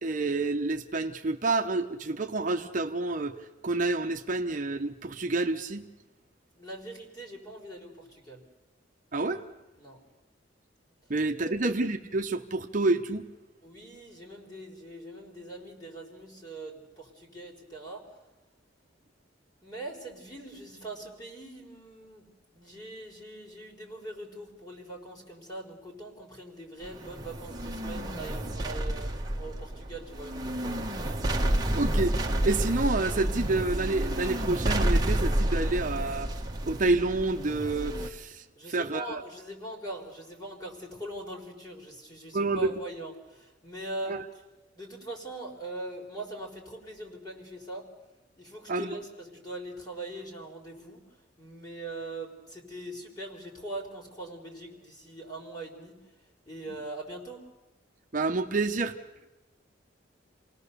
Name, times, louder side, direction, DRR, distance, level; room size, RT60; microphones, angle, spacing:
voice 1, 0.0-3.4 3.6-5.9 9.1-9.4 11.1-13.3 31.7-32.1 32.4-36.3 36.6-39.2 42.3-42.6 44.1-44.2 48.7-49.0 58.1-58.9, right 3 dB, 45° right, 4 dB, 0.9 m, -28 dB
voice 2, 6.5-8.4 9.8-10.0 11.4-11.7 13.6-18.1 19.6-30.8 38.5-44.2 44.8-47.9 48.4-51.0 51.4-56.0 56.5-57.5, right 1 dB, 20° left, 0 dB, 4.3 m, -42 dB
sound 1, 26.8-38.1, right 1 dB, 20° right, 1.5 m, -30 dB
28.5 x 18.5 x 6.8 m, 1.1 s
head